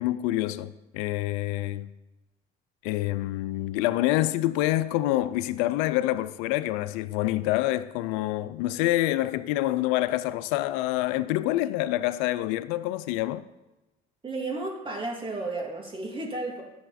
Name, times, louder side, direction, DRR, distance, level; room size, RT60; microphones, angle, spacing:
voice 1, 0.0-1.9 2.8-13.5, left 15 dB, 90° left, 0.5 m, -27 dB
voice 2, 14.2-16.6, right 2 dB, 25° right, 2.6 m, -33 dB
11.5 x 6.7 x 4.2 m
supercardioid pair, 80°, 19 cm